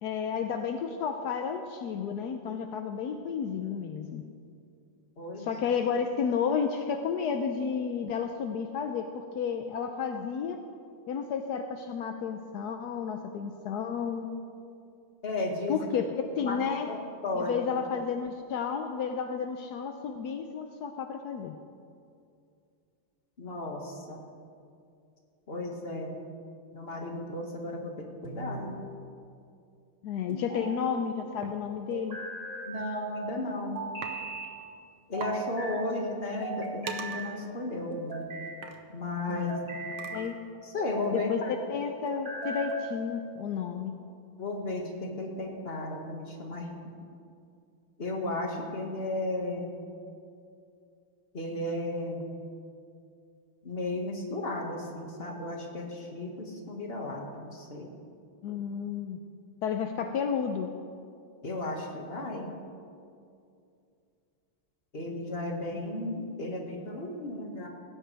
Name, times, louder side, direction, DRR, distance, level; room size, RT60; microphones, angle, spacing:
voice 1, 0.0-4.2 5.4-10.6 11.1-14.3 15.7-16.1 16.4-16.9 17.4-21.5 30.0-32.2 39.3-39.6 40.1-40.4 41.1-41.4 41.7-43.9 58.4-59.2 59.6-60.7, left 7 dB, 70° left, 6 dB, 0.9 m, -32 dB
voice 2, 5.2-5.5 15.2-16.0 16.4-17.6 23.4-24.2 25.5-26.2 26.7-28.8 32.7-33.8 35.1-38.2 38.9-39.8 40.6-41.6 44.4-46.7 48.0-49.7 51.3-52.3 53.6-57.9 61.4-62.6 64.9-67.7, left 2 dB, 30° left, 0 dB, 1.9 m, -34 dB
sound 1, 28.2-28.9 30.3-31.1 31.9-32.7 33.8-34.5 35.1-35.8 36.4-37.3 37.9-38.6 39.3-40.3 40.8-41.3 42.1-42.9, right 3 dB, 30° right, 1.9 m, -38 dB
sound 2, 31.4-31.6 32.7-32.8 33.2-33.5 34.0-34.2 34.5-34.6 34.9-35.0 35.2-35.4 35.9-40.5, right 6 dB, 70° right, 1.8 m, -43 dB
18.0 x 16.5 x 3.4 m, 2.4 s
omnidirectional pair, 2.4 m